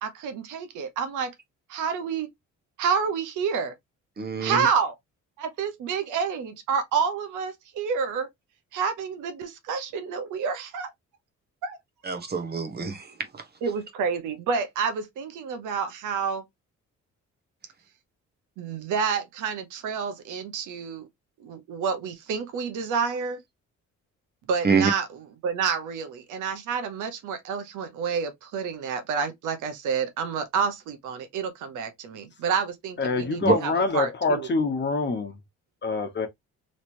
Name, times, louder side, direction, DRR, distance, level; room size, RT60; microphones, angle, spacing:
voice 1, 0.0-1.3 1.7-2.3 2.8-3.7 4.4-4.9 5.4-8.3 8.7-10.9 11.6-11.8 13.6-16.4 18.6-21.1 21.4-23.4 24.5-34.5, right 6 dB, 85° right, 0.9 m, -29 dB
voice 2, 4.2-4.7 12.0-13.0 24.6-24.9 33.4-33.6, right 4 dB, 35° right, 0.8 m, -24 dB
voice 3, 33.0-35.4 35.8-36.3, left 3 dB, 35° left, 1.0 m, -25 dB
3.2 x 2.9 x 2.6 m
cardioid pair, 90°, 30 cm